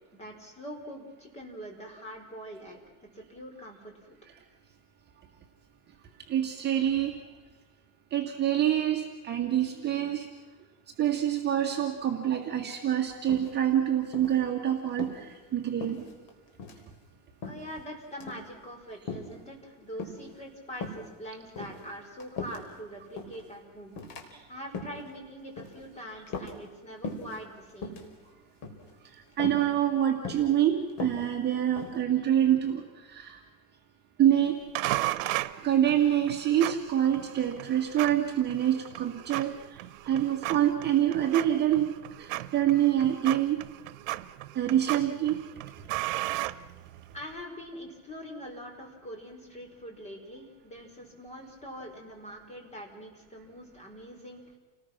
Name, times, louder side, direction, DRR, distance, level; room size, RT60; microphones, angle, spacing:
voice 1, 0.1-4.2 17.4-28.0 47.1-54.6, equal, 15° left, 2 dB, 4.9 m, -44 dB
voice 2, 6.3-7.2 8.1-10.3 11.0-16.1 29.4-33.4 34.2-34.7 35.6-41.9 42.2-43.6 44.6-45.4, right 11 dB, 25° right, 1 dB, 2.0 m, -26 dB
sound 1, 13.3-13.8 14.1-14.4 14.9-15.2 15.8-16.3 16.6-16.8 17.4-17.8 18.1-18.5 19.1-19.4 20.0-20.4 20.8-21.1 21.5-22.8 23.2-23.4 24.0-24.2 24.6-25.0 25.6-25.8 26.3-26.8 27.0-27.4 27.7-28.1 28.6-28.9 29.4-29.7 30.2-30.5 30.9-32.0, left 3 dB, 55° left, 4.2 m, -38 dB
sound 2, 34.8-47.2, right 17 dB, 90° right, 1.0 m, -36 dB
29.5 x 19.5 x 6.0 m, 1.3 s
cardioid pair, 155°, 38 cm